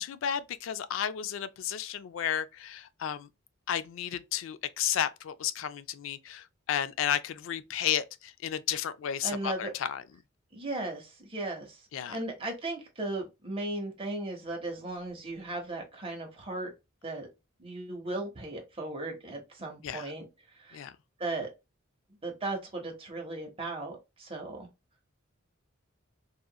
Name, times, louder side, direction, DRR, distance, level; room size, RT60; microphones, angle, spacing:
voice 1, 0.0-3.3 3.7-10.0 11.9-12.2 19.8-20.1 20.7-20.9, left 9 dB, 65° left, 0.3 m, -33 dB
voice 2, 9.2-9.7 10.5-16.7 17.0-17.3 17.6-20.3 20.5-20.8 21.2-21.5 22.1-24.7, right 2 dB, 25° right, 0.9 m, -36 dB
2.8 x 2.4 x 2.3 m
head